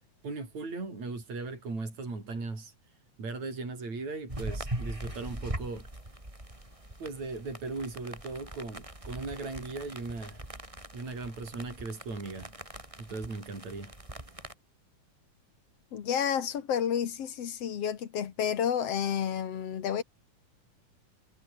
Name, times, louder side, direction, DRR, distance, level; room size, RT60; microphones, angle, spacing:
voice 1, 0.2-2.7 3.2-5.9 7.0-10.5 10.9-12.5 13.0-13.9, right 3 dB, 55° right, 8.7 m, -38 dB
sound 1, 4.3-14.5, right 1 dB, 10° right, 4.0 m, -42 dB
voice 2, 15.9-20.0, left 8 dB, 55° left, 2.4 m, -30 dB
omnidirectional pair, 3.7 m